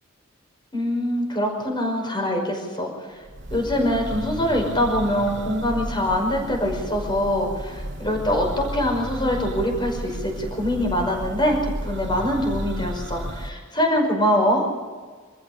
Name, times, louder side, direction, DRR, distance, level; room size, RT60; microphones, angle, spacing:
voice 1, 0.7-3.2 3.5-14.7, equal, 25° left, 2 dB, 5.4 m, -24 dB
Church bell, 3.2-13.5, equal, 60° right, 2.0 m, -33 dB
26.5 x 14.5 x 7.0 m, 1.5 s
head